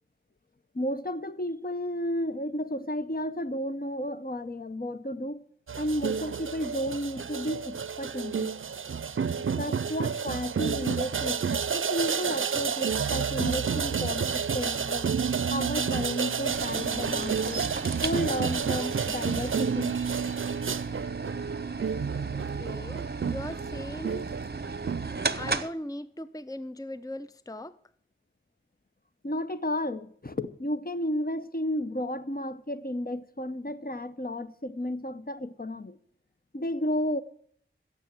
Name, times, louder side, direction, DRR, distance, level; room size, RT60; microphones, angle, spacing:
voice 1, 0.7-5.4 5.8-8.5 9.4-15.1 15.5-17.7 18.0-19.9 29.2-36.0 36.5-37.2, left 1 dB, 45° left, 0.8 m, -32 dB
sound 1, 5.7-25.6, right 6 dB, 80° right, 0.4 m, -30 dB
sound 2, 16.5-25.7, right 3 dB, 50° right, 0.8 m, -36 dB
voice 2, 22.3-24.3 25.3-27.8, left 1 dB, 15° left, 0.5 m, -39 dB
16.5 x 7.1 x 7.5 m
wide cardioid pair, 40°, 21 cm